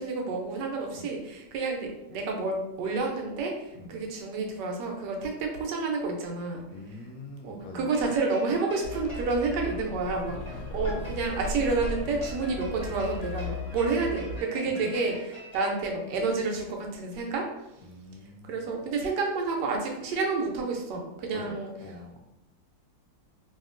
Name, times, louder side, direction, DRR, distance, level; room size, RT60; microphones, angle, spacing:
voice 1, 0.0-6.6 7.4-17.5 18.4-21.7, right 3 dB, 70° right, 1 dB, 1.1 m, -30 dB
voice 2, 3.7-4.1 6.7-7.9 10.3-10.4 10.7-11.0 14.6-14.9 17.8-18.7 21.3-22.2, left 2 dB, 85° left, 3 dB, 1.3 m, -44 dB
sound 1, 7.9-16.3, left 1 dB, 20° left, 1.0 m, -44 dB
sound 2, 8.8-14.4, left 1 dB, 65° left, 0.9 m, -36 dB
2.8 x 2.6 x 2.4 m, 0.88 s
omnidirectional pair, 2.1 m